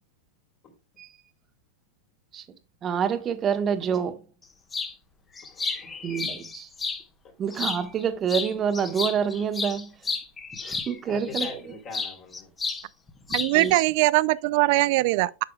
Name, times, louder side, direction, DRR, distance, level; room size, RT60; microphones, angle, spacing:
voice 1, 2.8-4.2 6.0-6.7 7.4-9.9 10.6-11.7 13.5-13.8, right 7 dB, 30° right, 1.2 m, -27 dB
sound 1, 4.7-4.9 5.4-7.0 7.5-8.0 8.3-11.6 11.9-12.8 13.1-13.7, left 4 dB, 20° left, 1.4 m, -32 dB
voice 2, 5.4-6.3 11.1-12.5, left 3 dB, 40° left, 3.2 m, -43 dB
voice 3, 13.3-15.4, right 19 dB, 60° right, 0.4 m, -21 dB
8.7 x 6.6 x 2.3 m
hypercardioid pair, 115°, 0 cm